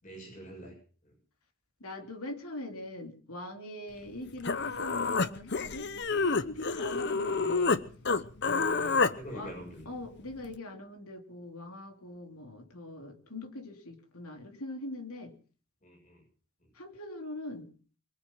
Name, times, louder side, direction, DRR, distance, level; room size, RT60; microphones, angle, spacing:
voice 1, 0.0-0.8 8.8-9.9 15.8-16.2, equal, 35° left, 1 dB, 7.0 m, -45 dB
voice 2, 1.8-5.9 6.2-7.8 8.4-9.5 9.8-15.3 16.7-17.7, left 2 dB, 85° left, 4 dB, 3.2 m, -42 dB
Human voice, 4.1-4.2 4.4-7.8 8.1-9.1, left 4 dB, 50° left, 0.9 m, -28 dB
23.0 x 8.3 x 7.3 m, 0.42 s
head